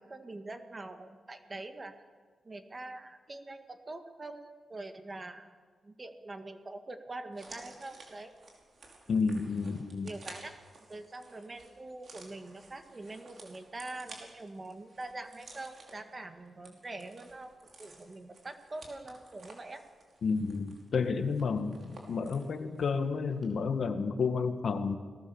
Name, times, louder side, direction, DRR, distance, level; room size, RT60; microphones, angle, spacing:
voice 1, 0.0-2.0 2.4-5.5 5.8-8.3 9.2-9.6 10.0-10.6 10.9-19.8, right 2 dB, 25° right, 7 dB, 1.8 m, -44 dB
sound 1, 7.3-23.0 23.3-23.4, right 3 dB, 50° right, 5.1 m, -54 dB
voice 2, 9.1-10.1 20.2-25.0, left 5 dB, 60° left, 8 dB, 1.7 m, -31 dB
29.5 x 19.0 x 7.2 m, 1.5 s
wide cardioid pair, 155°, 0 cm